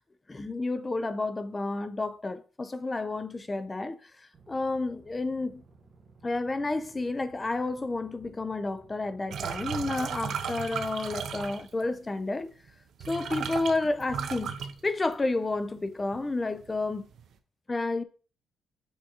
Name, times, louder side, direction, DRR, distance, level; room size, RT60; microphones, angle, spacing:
voice 1, 0.3-4.1 4.5-5.6 6.2-12.5 13.1-14.5 14.8-17.0 17.7-18.0, left 2 dB, 20° left, 0.3 m, -30 dB
sound 1, 4.3-9.3, right 4 dB, 40° right, 1.0 m, -57 dB
sound 2, 9.3-11.8 12.7-12.8 13.0-15.4 15.8-16.2 16.6-17.3, right 7 dB, 60° right, 0.5 m, -35 dB
5.2 x 3.7 x 2.8 m
cardioid pair, 130°, 0 cm